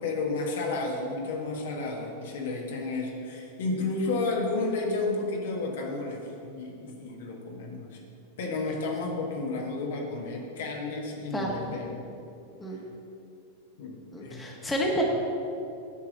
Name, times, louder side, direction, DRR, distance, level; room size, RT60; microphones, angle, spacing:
voice 1, 0.0-8.0 8.4-12.0 12.7-12.8 13.8-14.5, left 3 dB, 60° left, -1 dB, 1.5 m, -32 dB
voice 2, 11.3-11.7 12.6-12.8 14.1-15.0, equal, 10° left, -2 dB, 1.5 m, -30 dB
9.7 x 4.8 x 7.6 m, 2.6 s
figure-of-eight pair, 90°, 0 cm